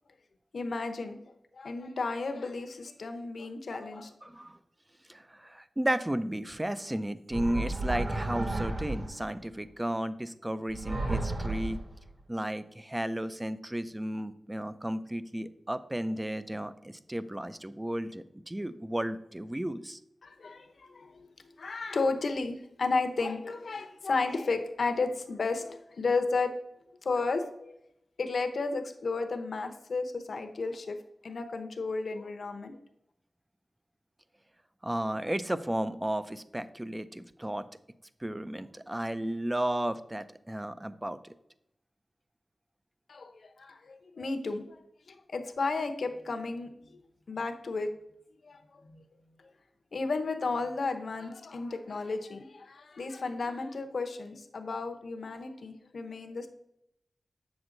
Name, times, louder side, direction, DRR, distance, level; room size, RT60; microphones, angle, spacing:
voice 1, 0.5-1.2 1.6-4.3 20.2-21.3 21.6-26.5 27.0-27.8 28.2-31.0 31.2-32.8 43.1-43.3 43.6-44.8 45.3-46.7 47.3-47.9 48.4-49.0 49.4-49.5 49.9-56.5, left 3 dB, 70° left, 6 dB, 0.9 m, -33 dB
voice 2, 4.2-4.6 5.1-11.8 12.3-20.0 34.8-37.7 38.2-41.3, right 1 dB, 15° right, 13 dB, 0.4 m, -33 dB
sound 1, 7.3-9.3 10.7-12.1, right 2 dB, 45° right, 1.4 m, -33 dB
7.8 x 6.2 x 3.9 m, 0.78 s
wide cardioid pair, 115°, 0 cm